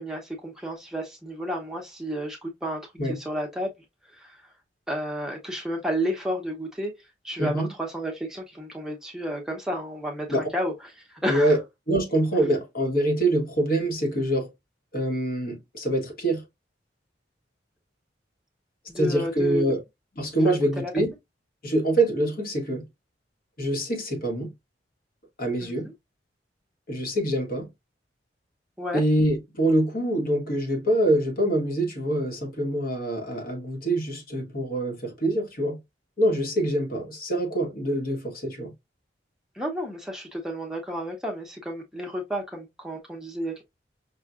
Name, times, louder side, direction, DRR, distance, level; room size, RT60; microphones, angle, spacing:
voice 1, 0.0-3.7 4.2-4.4 4.9-6.9 7.2-10.3 10.5-10.7 11.1-11.6 18.9-19.6 20.4-20.9 25.6-25.9 28.8-29.0 39.5-43.6, equal, 5° right, 0.8 m, -31 dB
voice 2, 7.4-7.7 10.3-10.5 11.3-11.6 11.9-14.5 14.9-16.4 19.0-19.8 20.1-21.1 21.6-22.9 23.6-24.5 25.4-25.9 26.9-27.7 28.9-35.8 36.2-38.7, right 1 dB, 55° left, 1.3 m, -25 dB
5.6 x 2.4 x 2.4 m
head